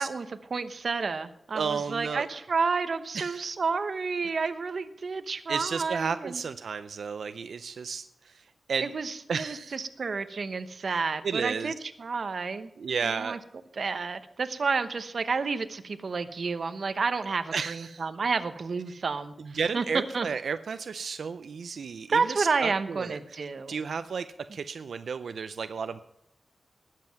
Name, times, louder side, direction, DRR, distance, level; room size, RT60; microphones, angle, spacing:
voice 1, 0.0-6.4 8.8-13.4 13.8-19.8 20.1-20.3 22.1-23.8, right 4 dB, 55° right, 10 dB, 0.9 m, -30 dB
voice 2, 1.5-2.3 3.1-3.5 5.5-8.9 9.3-9.8 11.2-11.7 12.8-13.4 17.5-18.0 19.4-23.2 23.7-24.3 24.5-26.0, right 6 dB, 85° right, 11 dB, 0.5 m, -32 dB
19.5 x 7.6 x 5.9 m, 0.82 s
wide cardioid pair, 125°, 0 cm